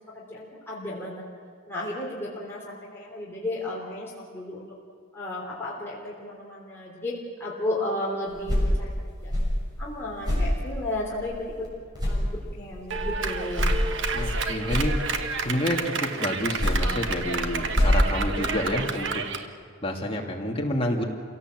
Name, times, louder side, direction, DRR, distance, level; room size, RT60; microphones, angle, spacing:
voice 1, 0.1-1.2 1.7-4.6 5.1-8.9 9.2-9.5 9.8-11.4 12.1-13.7, left 1 dB, 10° left, -6 dB, 3.3 m, -33 dB
sound 1, 8.3-11.7 11.9-15.5 16.3-19.0, equal, 20° right, 6.9 m, -27 dB
Clapping, 12.9-19.5, right 4 dB, 60° right, 1.3 m, -30 dB
voice 2, 14.1-15.0 15.4-19.2 19.8-21.0, left 1 dB, 25° left, 0 dB, 2.5 m, -29 dB
27.5 x 17.5 x 7.7 m, 2.1 s
head